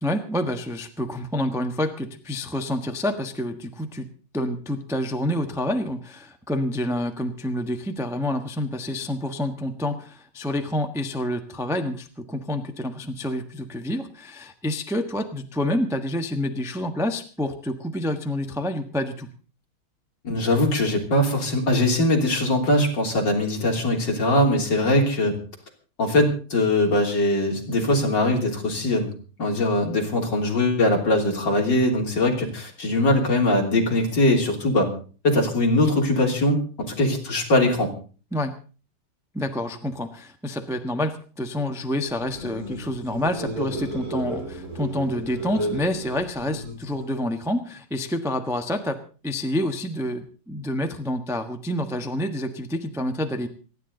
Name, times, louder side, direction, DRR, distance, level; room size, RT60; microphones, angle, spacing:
voice 1, 0.0-4.1 4.3-19.3 38.3-38.5 39.3-49.0 49.2-53.5, left 1 dB, ahead, 5 dB, 0.8 m, -28 dB
voice 2, 20.2-25.4 26.0-29.1 29.4-34.9 35.2-36.6 37.0-37.9, left 1 dB, 55° left, 0 dB, 3.9 m, -21 dB
sound 1, 42.1-47.2, right 1 dB, 40° right, 4.4 m, -33 dB
27.5 x 10.5 x 4.0 m, 0.38 s
omnidirectional pair, 2.4 m